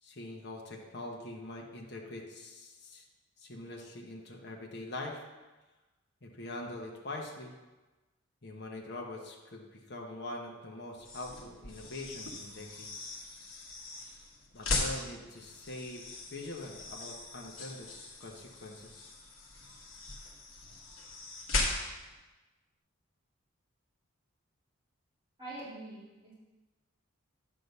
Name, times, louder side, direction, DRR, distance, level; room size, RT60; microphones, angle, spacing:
voice 1, 0.0-3.0 3.4-5.2 6.2-7.5 8.4-13.1 14.5-16.0 16.3-17.9 18.2-19.1, left 2 dB, 50° left, -1 dB, 1.0 m, -43 dB
sound 1, 11.0-22.1, left 2 dB, 65° left, 1.5 m, -39 dB
voice 2, 25.4-26.3, right 2 dB, 25° right, -11 dB, 3.1 m, -44 dB
9.4 x 3.8 x 6.6 m, 1.2 s
head